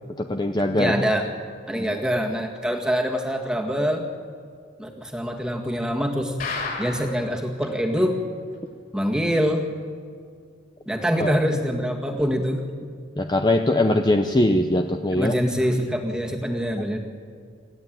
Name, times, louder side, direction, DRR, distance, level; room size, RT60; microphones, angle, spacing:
voice 1, 0.2-0.9 11.2-11.4 13.2-15.3, left 1 dB, 20° left, 6 dB, 0.7 m, -21 dB
voice 2, 0.8-1.3 1.7-4.1 4.8-6.3 6.8-8.2 8.9-9.7 10.9-12.7 15.2-17.0, equal, 5° right, 2 dB, 1.9 m, -24 dB
sound 1, 6.4-7.2 7.6-7.7 8.0-8.1 8.5-8.6, left 4 dB, 45° left, 6.4 m, -30 dB
27.5 x 14.0 x 9.2 m, 2.1 s
head